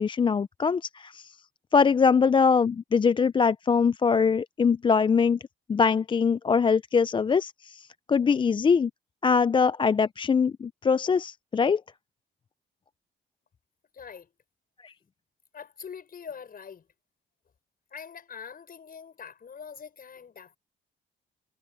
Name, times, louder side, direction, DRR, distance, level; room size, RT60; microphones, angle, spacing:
voice 1, 0.0-1.4 1.7-5.4 5.7-8.9 9.2-11.8 14.8-14.9, left 5 dB, 25° left, 0.4 m, -23 dB
voice 2, 13.9-14.3 15.5-16.9 17.9-20.6, left 6 dB, 45° left, 6.6 m, -43 dB
cardioid pair, 90°, 20 cm